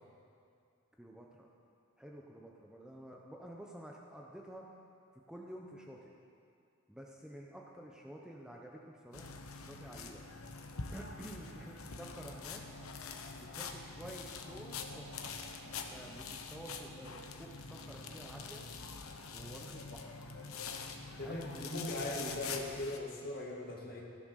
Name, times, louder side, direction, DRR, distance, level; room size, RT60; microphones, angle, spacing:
voice 1, 1.0-1.5 2.0-4.7 5.3-6.1 6.9-10.2 10.9-12.6 13.4-15.4 15.7-18.6 19.3-20.2 21.2-21.9, right 1 dB, 5° right, -1 dB, 0.9 m, -50 dB
sound 1, 9.1-23.0, left 4 dB, 85° left, 1.1 m, -45 dB
voice 2, 21.2-24.0, left 1 dB, 45° left, -2 dB, 2.4 m, -40 dB
15.0 x 11.5 x 6.5 m, 2.4 s
head